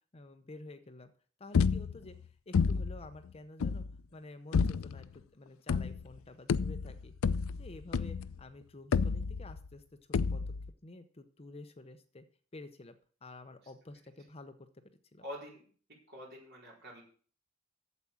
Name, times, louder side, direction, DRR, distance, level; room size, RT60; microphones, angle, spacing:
voice 1, 0.1-1.1 1.4-2.2 2.5-3.8 4.1-7.1 7.6-9.8 10.1-10.5 10.8-12.2 12.5-13.0 13.2-14.5 14.8-15.2, left 2 dB, 30° left, 9 dB, 0.7 m, -50 dB
sound 1, 1.5-2.2 2.5-3.1 3.6-4.0 4.5-5.0 5.7-6.2 6.5-8.4 8.9-9.7 10.1-10.7, left 5 dB, 80° left, 0.4 m, -30 dB
voice 2, 15.2-15.7 16.1-17.0, equal, 55° right, -3 dB, 4.6 m, -46 dB
8.4 x 7.4 x 7.0 m, 0.43 s
head